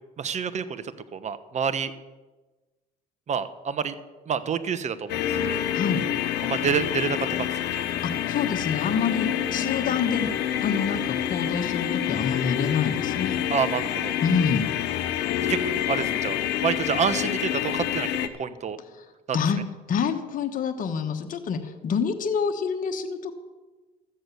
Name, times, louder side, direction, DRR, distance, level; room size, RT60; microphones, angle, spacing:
voice 1, 0.2-0.8 1.1-1.9 3.3-3.9 4.3-5.6 6.4-7.8 13.5-14.2 15.5-16.4 16.6-18.8 19.3-19.4, right 6 dB, 45° right, 13 dB, 1.0 m, -28 dB
sound 1, 5.1-18.3, left 11 dB, 75° left, 1.0 m, -27 dB
voice 2, 5.7-6.0 8.0-10.3 10.6-13.4 14.2-14.7 19.3-19.6 19.9-23.3, left 6 dB, 50° left, 5 dB, 1.3 m, -27 dB
13.5 x 7.9 x 6.9 m, 1.2 s
supercardioid pair, 80°, 17 cm